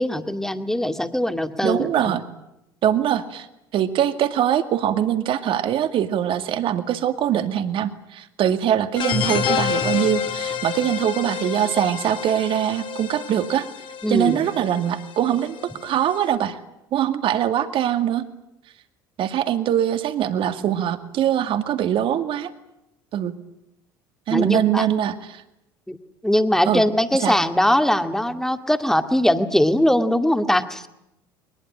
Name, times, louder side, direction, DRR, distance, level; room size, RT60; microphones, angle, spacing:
voice 1, 0.0-2.1 14.0-14.4 24.3-24.9 25.9-26.0 26.2-30.8, left 1 dB, 5° left, 8 dB, 2.1 m, -21 dB
voice 2, 1.6-2.2 2.8-3.5 3.7-13.7 14.1-15.6 15.8-16.6 16.9-18.3 19.2-22.5 23.1-23.3 24.3-25.4 26.7-26.8 27.2-27.4, right 10 dB, 50° right, 9 dB, 2.1 m, -22 dB
sound 1, 9.0-16.3, left 7 dB, 45° left, 3.0 m, -29 dB
22.0 x 21.0 x 9.8 m, 0.85 s
hypercardioid pair, 65°, 11 cm